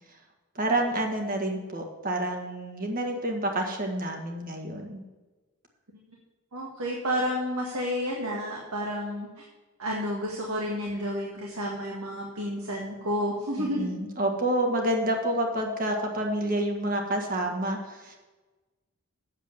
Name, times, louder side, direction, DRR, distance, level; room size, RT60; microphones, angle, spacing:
voice 1, 0.5-5.0 13.6-18.1, right 1 dB, 40° right, 2 dB, 1.6 m, -28 dB
voice 2, 6.5-9.3 9.8-13.9, equal, 80° right, -3 dB, 1.8 m, -30 dB
8.4 x 7.1 x 7.3 m, 1.2 s
head